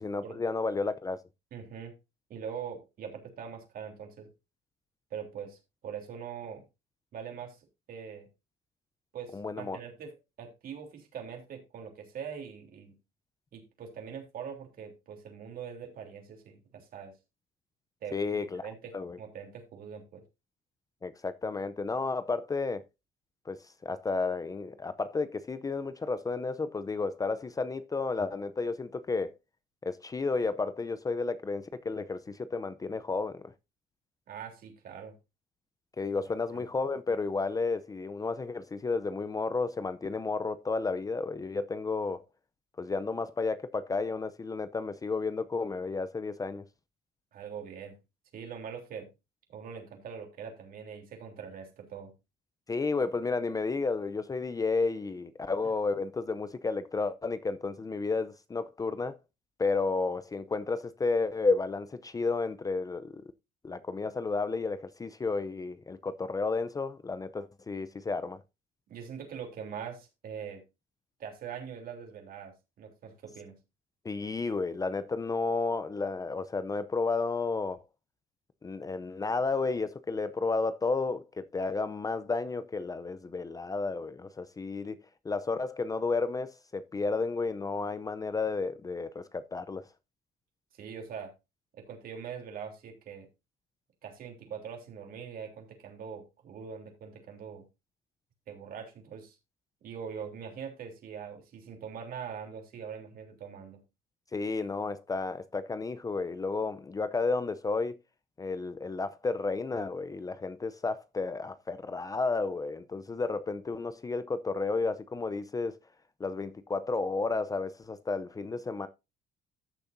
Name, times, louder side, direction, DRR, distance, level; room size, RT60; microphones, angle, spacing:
voice 1, 0.0-1.2 9.3-9.8 18.1-18.6 18.9-19.2 21.0-22.8 23.5-29.3 29.8-33.5 36.0-42.2 42.8-46.6 52.7-59.2 59.6-63.2 63.6-68.4 74.0-77.8 78.6-85.0 85.2-89.9 104.3-108.0 108.4-115.8 116.2-118.9, left 3 dB, 20° left, 0.6 m, -32 dB
voice 2, 1.5-1.9 2.3-4.3 5.1-6.6 7.1-7.6 7.9-8.3 9.1-13.0 13.5-17.1 18.0-18.2 18.6-18.9 19.2-20.2 34.3-35.1 36.5-36.6 47.3-48.0 48.3-49.1 49.5-52.1 68.9-70.6 71.2-73.6 90.7-91.3 91.7-93.3 94.0-97.7 98.5-99.4 99.8-103.8, right 7 dB, 60° right, 3.4 m, -42 dB
14.0 x 6.8 x 2.7 m
cardioid pair, 110°, 17 cm